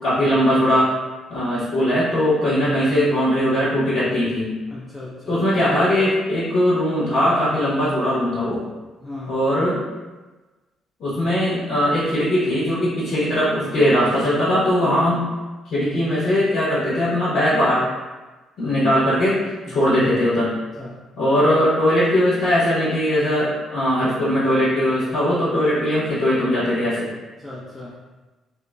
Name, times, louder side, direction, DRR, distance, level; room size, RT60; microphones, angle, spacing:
voice 1, 0.0-0.9 1.3-4.5 5.3-8.6 9.3-9.8 11.0-15.3 15.6-17.9 18.6-20.5 21.2-27.1, equal, 60° left, -10 dB, 0.9 m, -20 dB
voice 2, 4.7-5.4 9.0-9.4 19.7-19.8 20.8-21.0 27.4-28.0, left 2 dB, 15° left, -7 dB, 0.5 m, -37 dB
2.9 x 2.1 x 2.3 m, 1.2 s
figure-of-eight pair, 45°, 0 cm